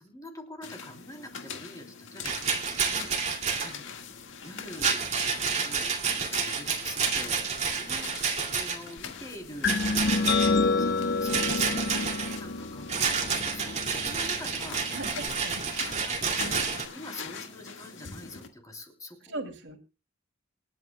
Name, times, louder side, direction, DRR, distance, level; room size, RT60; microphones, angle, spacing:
voice 1, 0.0-4.1 4.4-5.0 5.6-8.1 8.5-9.8 10.6-11.9 12.3-15.0 15.8-19.4, left 1 dB, 20° left, 3 dB, 3.2 m, -45 dB
sound 1, 0.6-18.5, left 5 dB, 90° left, 1.8 m, -44 dB
Rattle, 2.2-3.7 4.7-8.9 9.6-10.5 11.3-12.4 12.9-16.9, right 5 dB, 40° right, 2.4 m, -29 dB
sound 2, 9.6-15.3, left 3 dB, 60° left, 1.2 m, -29 dB
voice 2, 14.9-16.0 16.4-16.8 19.3-19.8, right 2 dB, 70° right, 5 dB, 2.7 m, -39 dB
27.5 x 9.3 x 2.2 m, 0.30 s
head